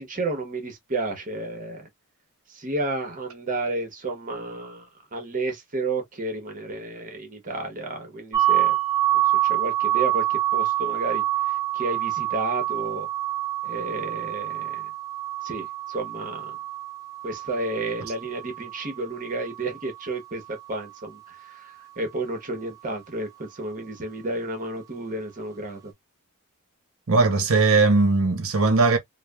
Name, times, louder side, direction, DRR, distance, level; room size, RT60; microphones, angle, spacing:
voice 1, 0.0-1.9 2.5-8.8 9.4-11.2 11.7-13.1 13.6-14.9 15.4-16.6 17.2-20.4 20.7-25.9, right 2 dB, 40° right, 0.9 m, -31 dB
sound 1, 8.3-20.1, right 14 dB, 15° right, 0.6 m, -27 dB
voice 2, 27.1-29.0, right 3 dB, 65° right, 0.8 m, -19 dB
3.1 x 2.0 x 2.2 m
head